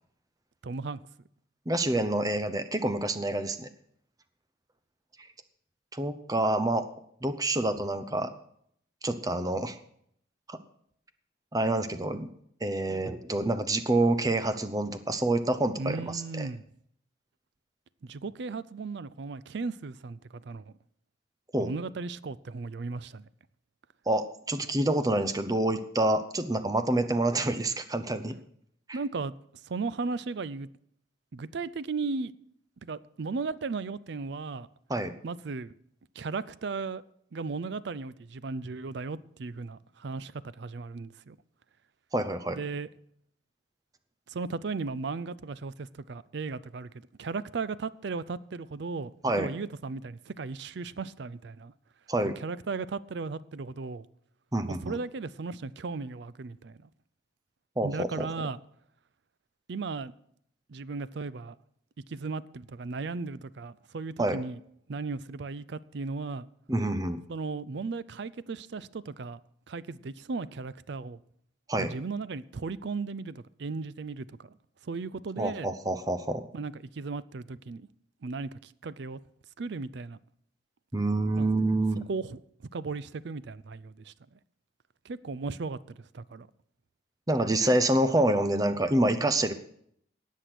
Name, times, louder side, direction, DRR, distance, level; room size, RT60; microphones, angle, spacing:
voice 1, 0.6-1.0 15.8-16.6 18.0-20.7 21.6-23.2 28.9-29.3 29.6-30.7 31.3-32.3 32.8-34.7 35.2-35.7 36.2-37.0 37.3-41.4 42.5-42.9 44.3-46.9 47.2-51.7 52.4-54.1 54.7-56.9 57.8-58.6 59.7-60.1 60.7-61.5 62.1-64.6 64.9-66.5 67.3-69.4 69.7-71.2 71.8-74.5 74.8-75.7 76.5-77.9 78.2-79.2 79.6-80.2 81.4-81.5 82.1-82.4 82.7-84.1 85.0-86.5, right 4 dB, 60° right, 0.4 m, -36 dB
voice 2, 1.7-3.7 5.9-6.9 7.2-8.3 9.0-9.8 10.5-10.6 11.5-12.3 12.6-16.5 21.5-21.7 24.1-28.4 28.9-29.0 34.9-35.1 42.1-42.6 49.2-49.5 52.1-52.3 54.5-55.0 57.8-58.3 64.2-64.4 66.7-67.2 71.7-71.9 75.4-76.5 80.9-82.0 87.3-89.5, right 1 dB, 20° right, 0.7 m, -27 dB
18.0 x 6.5 x 6.0 m
head